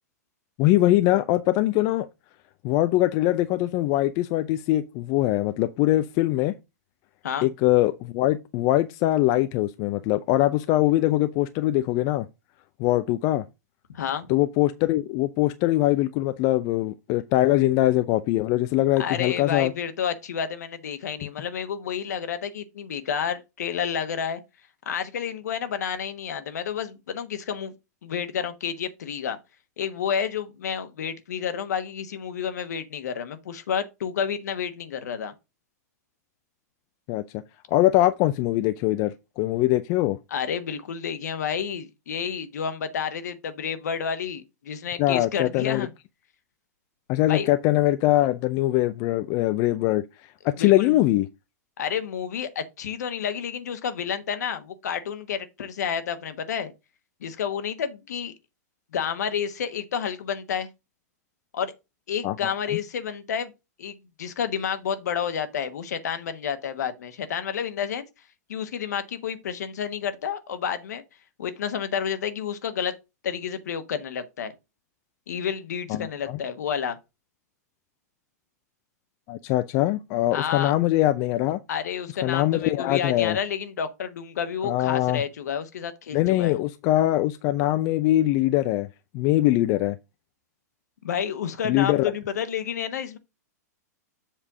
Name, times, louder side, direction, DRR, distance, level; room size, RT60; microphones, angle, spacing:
voice 1, 0.6-2.1 2.6-6.5 7.4-12.3 12.8-13.4 14.3-19.7 37.1-37.4 37.7-40.2 45.0-45.9 47.1-50.0 50.4-51.3 62.2-62.5 75.9-76.4 79.3-81.6 82.2-83.4 84.6-85.2 86.1-88.9 89.1-90.0 91.6-92.1, left 15 dB, 40° left, 0.5 m, -22 dB
voice 2, 13.9-14.3 19.0-24.4 24.8-27.7 28.0-29.4 29.8-35.3 40.3-45.9 47.3-47.5 50.6-51.0 51.8-56.7 57.2-58.3 58.9-60.7 61.5-61.7 62.1-63.5 63.8-68.0 68.5-71.0 71.4-72.9 73.2-74.5 75.3-77.0 80.3-80.7 81.7-86.6 91.0-93.2, left 7 dB, 75° left, 1.2 m, -30 dB
7.5 x 3.3 x 6.0 m
hypercardioid pair, 115°, 9 cm